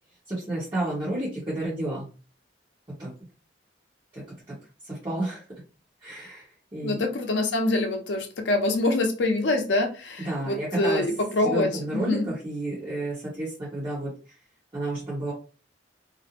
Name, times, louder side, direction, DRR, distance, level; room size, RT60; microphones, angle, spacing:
voice 1, 0.3-2.0 3.0-3.1 4.1-4.2 4.8-5.4 6.0-6.5 6.7-7.0 10.2-11.0 11.4-14.1 14.7-15.3, right 1 dB, 25° right, 0.9 m, -31 dB
voice 2, 6.8-12.3, left 2 dB, 75° left, 0.6 m, -25 dB
2.5 x 2.0 x 2.8 m
head